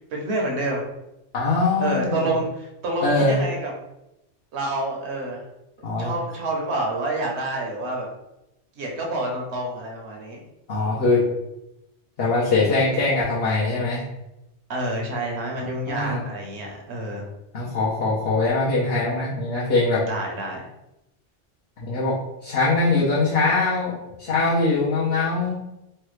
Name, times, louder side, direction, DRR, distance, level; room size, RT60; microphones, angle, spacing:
voice 1, 0.1-0.8 1.8-3.7 4.5-5.4 6.0-8.1 8.8-10.4 14.7-17.2 20.1-20.7, right 2 dB, 65° right, 0 dB, 1.0 m, -28 dB
voice 2, 1.3-2.2 3.0-3.4 5.8-6.1 10.7-11.2 12.2-14.0 15.6-16.2 17.5-20.0 21.8-22.1 22.4-25.6, left 3 dB, 60° left, -7 dB, 0.9 m, -22 dB
3.2 x 2.2 x 3.1 m, 0.90 s
omnidirectional pair, 1.2 m